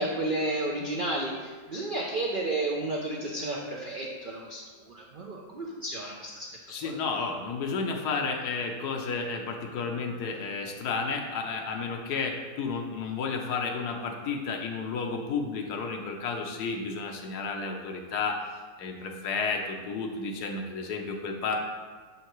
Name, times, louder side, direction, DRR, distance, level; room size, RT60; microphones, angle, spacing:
voice 1, 0.0-6.5 6.8-6.9, right 2 dB, 75° right, -2 dB, 0.4 m, -32 dB
voice 2, 6.7-18.4 18.8-21.6, left 4 dB, 80° left, 2 dB, 1.2 m, -32 dB
6.5 x 5.6 x 3.0 m, 1.4 s
omnidirectional pair, 1.7 m